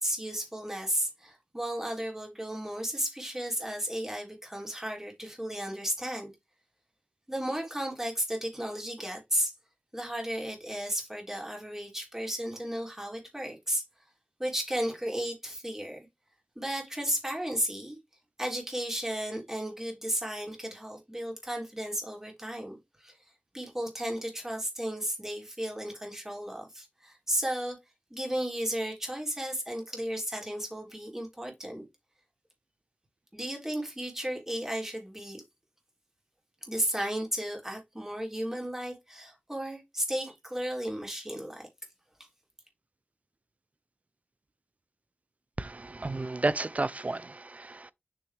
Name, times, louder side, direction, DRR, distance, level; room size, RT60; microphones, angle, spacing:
voice 1, 0.0-6.3 7.3-9.5 9.9-13.8 14.4-16.0 16.5-18.0 18.4-27.8 28.1-31.8 33.3-35.4 36.6-41.7, equal, 10° right, 3.3 m, -34 dB
voice 2, 45.6-47.9, right 2 dB, 40° right, 0.6 m, -32 dB
6.4 x 5.7 x 3.4 m
wide cardioid pair, 80°, 4 cm